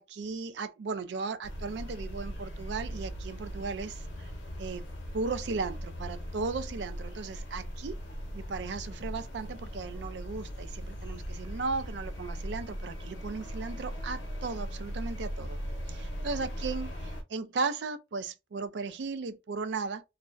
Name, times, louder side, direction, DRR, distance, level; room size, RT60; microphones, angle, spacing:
voice 1, 0.0-4.3 4.6-4.8 5.1-8.0 8.3-15.6 15.9-20.1, right 4 dB, 70° right, 0.4 m, -36 dB
sound 1, 1.4-17.2, equal, 80° left, 0.7 m, -39 dB
2.5 x 2.0 x 2.5 m
head